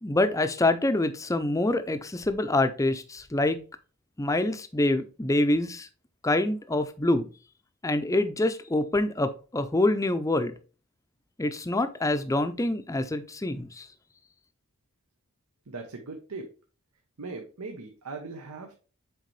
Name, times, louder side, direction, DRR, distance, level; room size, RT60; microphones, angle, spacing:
voice 1, 0.0-3.6 4.2-5.9 6.2-7.3 7.8-10.5 11.4-13.9, left 2 dB, 15° left, 10 dB, 0.5 m, -26 dB
voice 2, 15.7-16.5 17.2-18.8, right 3 dB, 90° right, 3 dB, 1.0 m, -39 dB
6.5 x 4.5 x 3.2 m, 0.35 s
head